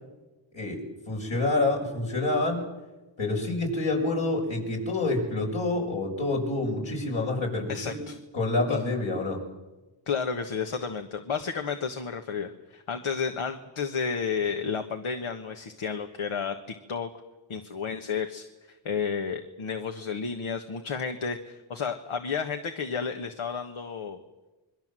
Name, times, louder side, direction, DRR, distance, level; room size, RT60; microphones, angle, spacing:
voice 1, 0.5-2.7 3.2-8.0 8.3-9.4, left 2 dB, 70° left, -1 dB, 7.2 m, -27 dB
voice 2, 7.7-8.2 8.7-8.8 10.1-16.5 16.9-17.1 17.5-18.5 18.8-24.2, left 6 dB, 85° left, 6 dB, 1.5 m, -31 dB
26.5 x 22.5 x 7.7 m, 1.1 s
cardioid pair, 55°, 48 cm